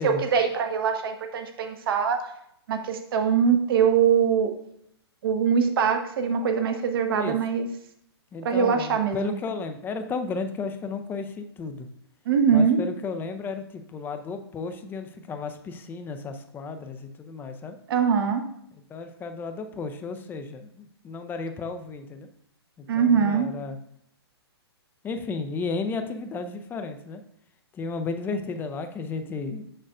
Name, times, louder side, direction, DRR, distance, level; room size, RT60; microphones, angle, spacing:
voice 1, 0.0-2.3 2.7-4.5 5.2-7.7 8.4-9.3 12.3-12.8 17.9-18.4 22.9-23.5, right 6 dB, 55° right, 6 dB, 1.0 m, -22 dB
voice 2, 8.3-11.9 12.5-17.8 18.9-22.3 22.8-23.8 25.0-27.2 27.7-29.6, left 4 dB, 15° left, 8 dB, 0.5 m, -33 dB
6.5 x 6.2 x 2.5 m, 0.73 s
hypercardioid pair, 130°, 14 cm